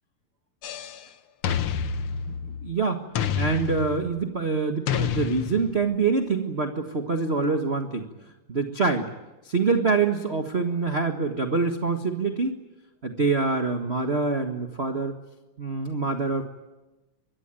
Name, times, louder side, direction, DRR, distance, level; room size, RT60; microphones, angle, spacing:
sound 1, 0.6-1.0 1.4-2.7 3.2-4.3 4.9-5.9, left 7 dB, 75° left, 1.2 m, -29 dB
voice 1, 2.4-3.0 3.3-8.1 8.5-9.1 9.4-12.6 13.0-15.1 15.6-16.4, right 4 dB, 50° right, 5 dB, 0.7 m, -25 dB
26.5 x 23.0 x 9.1 m, 1.1 s
omnidirectional pair, 3.9 m